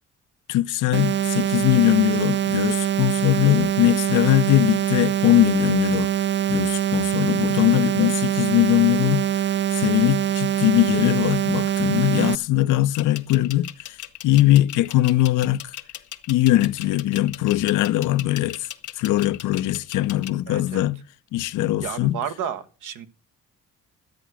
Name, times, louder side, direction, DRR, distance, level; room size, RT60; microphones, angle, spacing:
voice 1, 0.5-6.1 6.5-9.3 9.7-14.0 14.2-15.7 16.3-18.7 19.0-21.0 21.3-22.2, left 15 dB, 90° left, 0.6 m, -21 dB
sound 1, 0.9-12.3, right 10 dB, 40° right, 0.5 m, -23 dB
sound 2, 12.9-20.3, left 13 dB, 70° left, 1.3 m, -37 dB
voice 2, 20.5-20.9 21.8-23.1, right 8 dB, 85° right, 1.3 m, -32 dB
12.0 x 8.3 x 6.1 m
cardioid pair, 90°, 30 cm